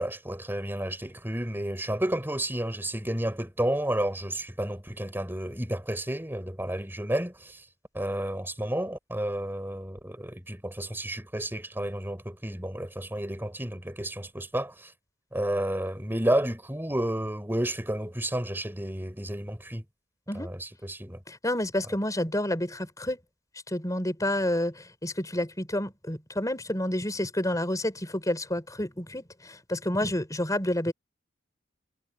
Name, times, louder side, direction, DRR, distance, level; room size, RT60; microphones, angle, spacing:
voice 1, 0.0-7.7 7.9-14.9 15.3-19.8 20.3-21.2, right 1 dB, 10° right, 3.7 m, -31 dB
voice 2, 21.3-23.2 23.7-30.9, left 1 dB, 20° left, 4.8 m, -29 dB
head